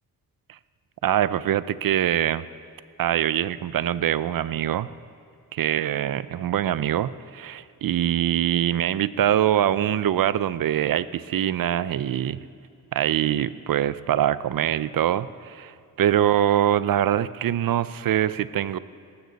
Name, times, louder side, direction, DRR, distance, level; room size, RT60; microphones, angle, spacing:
voice 1, 1.0-2.5 3.0-4.9 5.5-12.4 12.9-18.8, right 11 dB, 70° right, 16 dB, 0.5 m, -23 dB
19.0 x 14.5 x 4.0 m, 2.3 s
wide cardioid pair, 120°, 36 cm